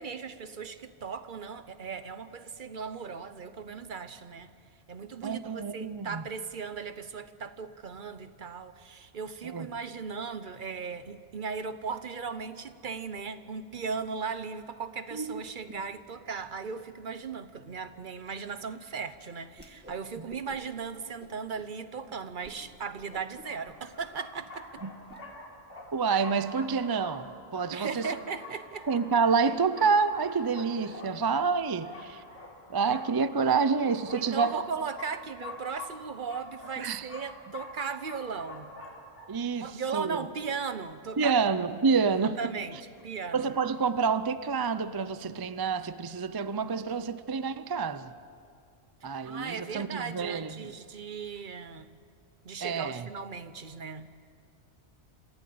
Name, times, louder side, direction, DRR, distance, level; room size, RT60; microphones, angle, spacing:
voice 1, 0.0-4.5 4.9-24.8 27.7-28.9 32.9-33.0 34.1-38.7 39.5-41.4 42.1-43.5 49.2-51.9 52.4-54.1, right 5 dB, 50° right, 1.0 m, -37 dB
voice 2, 5.2-6.2 9.4-9.7 15.1-15.4 15.7-15.8 20.2-20.3 24.8-24.9 25.9-28.1 28.9-32.2 32.7-34.5 36.8-37.1 39.3-40.3 41.2-42.4 43.3-48.1 49.0-50.7 52.6-53.1, right 5 dB, 35° right, 0.4 m, -28 dB
Whoosh swoosh swish, 19.5-20.0 20.3-20.8 21.2-21.7 22.1-22.2 22.4-22.6 22.9-25.2, equal, 10° right, 2.0 m, -52 dB
sound 1, 22.7-22.8 23.4-39.3, left 2 dB, 85° left, 3.8 m, -46 dB
27.0 x 15.0 x 8.5 m
omnidirectional pair, 1.2 m